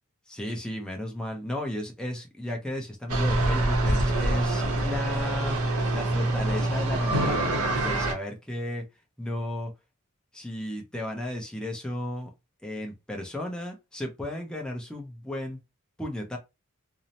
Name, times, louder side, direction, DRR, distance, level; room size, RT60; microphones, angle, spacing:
voice 1, 0.3-5.6 5.9-7.5 7.8-8.8 9.2-9.7 10.3-12.3 12.6-15.6 16.0-16.4, left 1 dB, 5° left, 0.6 m, -34 dB
sound 1, 3.1-8.1, right 1 dB, 80° right, 0.7 m, -25 dB
2.7 x 2.0 x 2.7 m
head